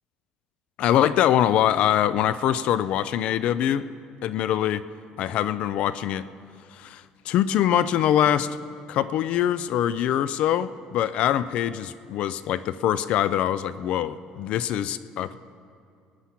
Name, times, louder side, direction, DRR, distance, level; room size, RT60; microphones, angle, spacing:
voice 1, 0.8-3.9 4.2-4.8 5.2-6.3 6.7-8.6 8.9-15.4, left 11 dB, 50° left, 16 dB, 0.3 m, -23 dB
19.5 x 9.9 x 5.9 m, 2.4 s
cardioid pair, 175°, 2 cm